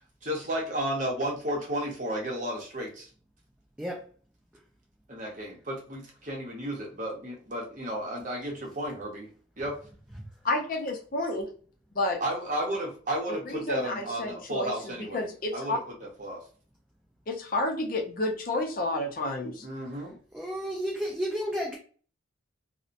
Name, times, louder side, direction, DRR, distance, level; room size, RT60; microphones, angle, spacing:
voice 1, 0.2-3.1 5.1-9.3 9.6-9.8 12.2-15.3 15.5-16.4 19.6-20.1, right 1 dB, 40° right, -1 dB, 0.8 m, -33 dB
voice 2, 10.4-11.5 11.9-12.2 13.5-15.8 17.3-19.7, left 2 dB, 45° left, 2 dB, 0.5 m, -30 dB
voice 3, 20.3-21.8, equal, 5° right, -2 dB, 0.4 m, -31 dB
2.7 x 2.1 x 2.4 m, 0.42 s
head